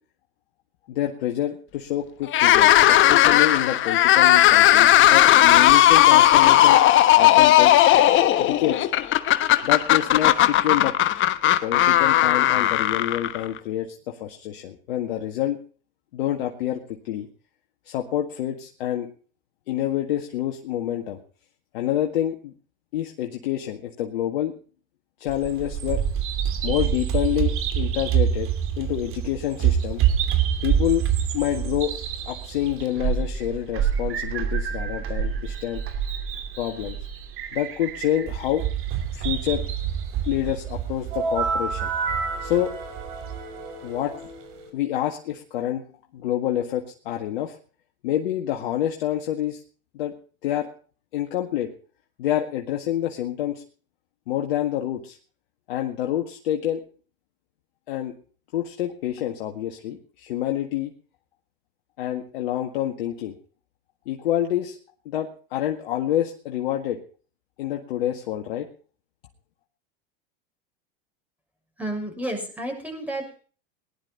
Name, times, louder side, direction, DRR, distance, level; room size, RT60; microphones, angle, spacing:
voice 1, 0.9-6.8 7.2-7.8 8.4-8.8 9.6-11.0 11.6-15.6 16.1-17.3 17.9-19.1 19.7-21.2 21.7-22.5 22.9-24.5 25.2-26.0 26.6-28.5 28.8-30.0 30.6-31.1 31.3-31.9 32.3-35.8 36.6-37.0 37.5-38.6 39.1-39.6 40.3-41.9 42.4-42.7 43.8-44.1 44.7-45.8 46.1-47.6 48.0-49.6 49.9-50.1 50.4-50.7 51.1-51.7 52.2-53.6 54.3-55.2 55.7-56.8 57.9-58.1 58.5-60.9 62.0-63.4 64.1-64.8 65.1-67.0 67.6-68.7, left 12 dB, 75° left, 2 dB, 1.9 m, -27 dB
sound 1, 2.3-13.6, left 13 dB, 40° left, 1.2 m, -16 dB
Bird vocalization bird call bird song, 25.3-43.4, right 9 dB, 45° right, 2.9 m, -27 dB
sound 2, 41.1-44.7, right 4 dB, 70° right, 5.1 m, -30 dB
voice 2, 71.8-73.4, right 1 dB, 5° right, 2 dB, 6.4 m, -31 dB
19.5 x 11.5 x 4.1 m, 0.40 s
hypercardioid pair, 100°, 30 cm